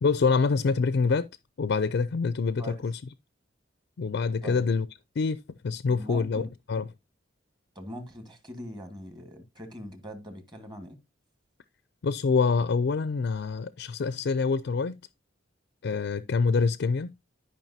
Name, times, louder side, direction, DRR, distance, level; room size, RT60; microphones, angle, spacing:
voice 1, 0.0-1.3 1.6-3.0 4.0-4.9 5.2-6.9 12.0-15.0 15.8-17.1, left 4 dB, 65° left, 0.4 m, -26 dB
voice 2, 5.9-6.5 7.7-11.0, equal, 25° right, 1.6 m, -41 dB
12.0 x 5.3 x 2.7 m
head